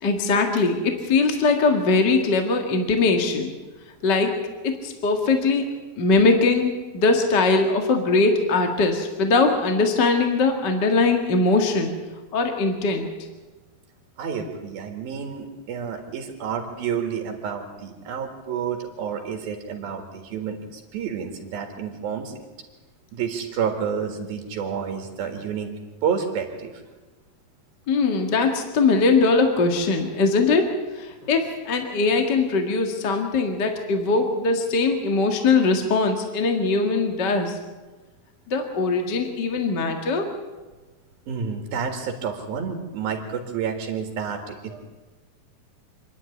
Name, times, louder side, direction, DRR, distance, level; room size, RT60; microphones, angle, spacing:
voice 1, 0.0-3.5 4.0-4.4 4.6-5.7 6.0-11.9 12.3-13.1 27.9-30.7 31.0-37.6 38.5-40.3, left 3 dB, 40° left, 4 dB, 1.8 m, -21 dB
voice 2, 14.2-22.3 23.1-25.7 26.0-26.8 41.3-44.8, right 7 dB, 80° right, 4 dB, 3.6 m, -29 dB
26.5 x 11.5 x 9.7 m, 1.2 s
omnidirectional pair, 4.2 m